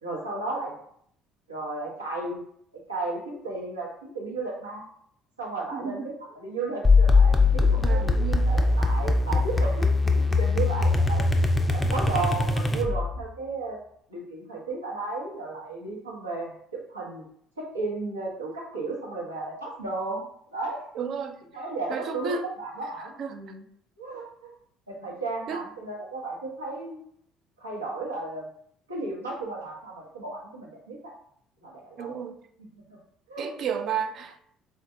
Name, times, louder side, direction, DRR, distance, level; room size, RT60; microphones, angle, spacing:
voice 1, 0.0-0.7 1.5-2.4 2.9-4.8 5.4-11.3 11.7-13.8 14.1-16.5 16.9-17.2 17.6-20.2 20.5-20.8 21.5-23.6 24.0-24.5 25.0-27.0 27.6-28.5 28.9-31.1 31.6-32.2 33.3-33.5, right 3 dB, 90° right, 0.7 m, -34 dB
voice 2, 5.7-6.1 7.8-8.5 21.0-21.4 21.9-22.5 23.2-23.4 25.5-25.6 32.0-32.4 33.4-34.5, right 6 dB, 50° right, 0.3 m, -32 dB
sound 1, 6.8-13.2, left 3 dB, 15° left, 0.4 m, -21 dB
3.7 x 2.2 x 2.6 m
figure-of-eight pair, 55°, 0 cm